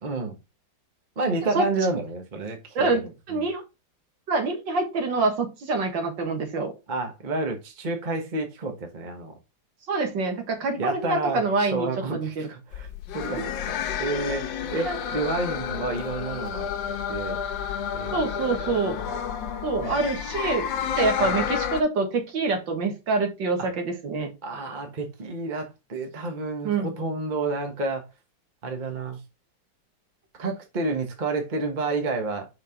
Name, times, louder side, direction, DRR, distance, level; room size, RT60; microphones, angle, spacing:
voice 1, 0.0-0.3 1.2-3.5 6.9-9.4 10.7-12.9 13.1-16.7 17.1-17.4 17.9-18.2 18.6-19.2 19.8-20.1 21.2-21.5 23.6-23.7 24.4-28.1 28.6-29.2 30.4-32.5, right 3 dB, 30° right, 1.3 m, -30 dB
voice 2, 2.8-3.6 4.3-6.7 9.9-12.5 13.2-13.3 14.8-15.0 18.1-19.0 19.6-20.7 21.0-24.3 26.6-26.9, right 3 dB, 80° right, 2.2 m, -26 dB
sound 1, 12.7-21.8, left 8 dB, 90° left, 1.5 m, -30 dB
5.8 x 4.7 x 3.6 m
omnidirectional pair, 2.0 m